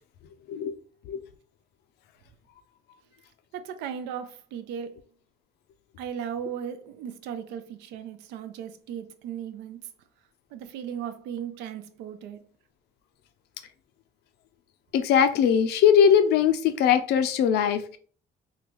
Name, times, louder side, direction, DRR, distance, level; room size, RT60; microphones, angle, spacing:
voice 1, 3.5-5.0 6.0-9.9 10.5-12.5, right 8 dB, 90° right, 0.4 m, -36 dB
voice 2, 14.9-18.0, left 8 dB, 75° left, 0.5 m, -21 dB
3.7 x 2.2 x 3.0 m
cardioid pair, 110°, 17 cm